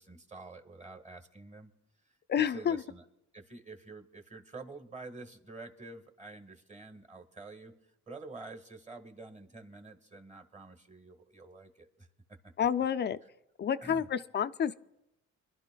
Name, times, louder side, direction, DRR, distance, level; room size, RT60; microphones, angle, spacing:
voice 1, 0.0-1.7 2.4-3.0 3.3-7.7 8.1-12.1 13.8-14.1, right 3 dB, 25° right, 6 dB, 1.5 m, -48 dB
voice 2, 2.3-2.8 12.6-13.2 13.6-14.8, left 8 dB, 35° left, 11 dB, 0.4 m, -29 dB
26.0 x 12.0 x 2.3 m, 0.90 s
cardioid pair, 90°, 30 cm